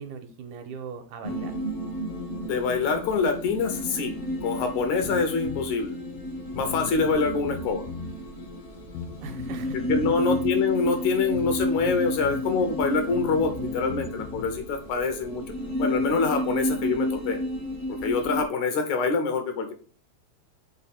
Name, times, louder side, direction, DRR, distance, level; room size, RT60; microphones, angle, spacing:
voice 1, 0.0-1.6 9.2-9.8 10.1-10.2, right 6 dB, 75° right, 5 dB, 2.1 m, -39 dB
sound 1, 1.2-18.4, equal, 50° left, 0.9 m, -32 dB
voice 2, 2.4-4.2 4.4-6.0 6.6-7.9 9.7-15.4 15.8-17.4 17.9-19.7, left 4 dB, 70° left, 6 dB, 2.0 m, -25 dB
Bass guitar, 5.0-5.7 6.2-6.3 6.5-8.2 9.0-10.6 11.3-12.5 12.8-14.6, left 6 dB, 90° left, 2.2 m, -39 dB
5.6 x 4.1 x 4.1 m, 0.42 s
omnidirectional pair, 3.7 m